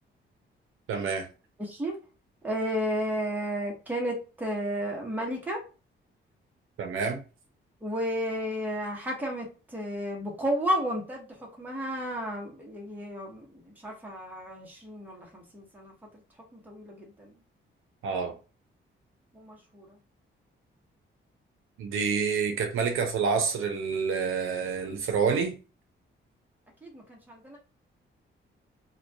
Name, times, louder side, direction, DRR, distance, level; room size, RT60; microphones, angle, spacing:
voice 1, 0.9-1.3 6.8-7.2 18.0-18.4 21.8-25.5, right 5 dB, 85° right, 0.6 m, -28 dB
voice 2, 1.6-2.0 2.4-5.6 7.8-11.3 11.6-15.9 16.5-17.3 19.3-19.9 26.8-27.6, equal, 10° right, 0.8 m, -32 dB
2.2 x 2.2 x 2.6 m
cardioid pair, 140°, 21 cm